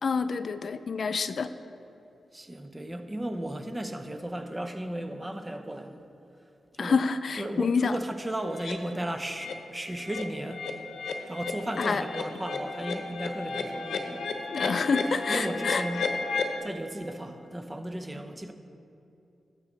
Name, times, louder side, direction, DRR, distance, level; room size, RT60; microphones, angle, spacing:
voice 1, 0.0-1.5 6.8-8.0 11.8-12.0 14.5-15.8, left 5 dB, 60° left, 12 dB, 0.4 m, -27 dB
voice 2, 2.3-6.0 6.7-7.0 7.3-10.7 11.3-14.3 15.3-16.1 16.6-18.5, right 1 dB, 20° right, 7 dB, 0.8 m, -35 dB
sound 1, 8.6-8.7 9.2-9.5 9.9-16.6, left 4 dB, 80° left, 0.9 m, -33 dB
12.5 x 7.5 x 4.0 m, 2.7 s
cardioid pair, 65°, 0 cm